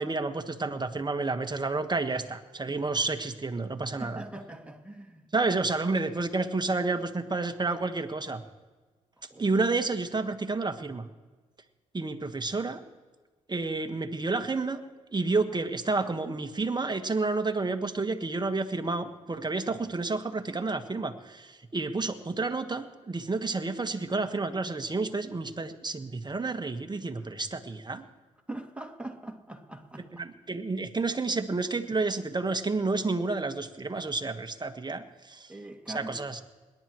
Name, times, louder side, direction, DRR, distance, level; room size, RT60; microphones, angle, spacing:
voice 1, 0.0-4.2 5.3-8.4 9.4-11.1 11.9-12.8 13.5-14.8 15.1-28.0 30.2-35.5 35.9-36.4, right 3 dB, 30° right, 1.5 m, -30 dB
voice 2, 4.0-5.2 9.3-9.5 27.2-27.3 28.5-30.1 35.5-36.2, right 2 dB, 10° right, 2.4 m, -41 dB
27.0 x 12.0 x 3.1 m
hypercardioid pair, 50°, 16 cm